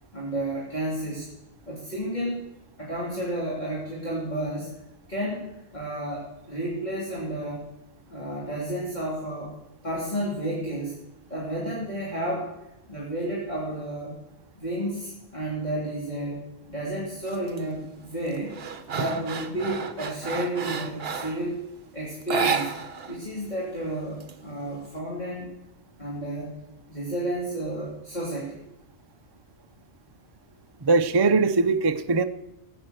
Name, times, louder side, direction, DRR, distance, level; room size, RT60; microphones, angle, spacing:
voice 1, 0.1-1.3 1.7-2.4 2.8-4.7 5.1-5.4 5.7-7.6 8.1-9.5 9.8-11.0 11.3-12.5 12.9-14.1 14.6-18.5 18.9-21.6 21.9-22.7 23.1-25.5 26.0-26.6 26.9-28.6, right 1 dB, 35° left, -5 dB, 2.9 m, -31 dB
sound 1, 17.3-17.6 18.0-21.5 22.2-23.2 23.4-23.5 23.9-24.9, right 5 dB, 50° right, 1.2 m, -31 dB
voice 2, 30.8-32.2, right 3 dB, 30° right, 9 dB, 0.4 m, -21 dB
14.5 x 8.8 x 7.9 m, 0.90 s
omnidirectional pair, 1.3 m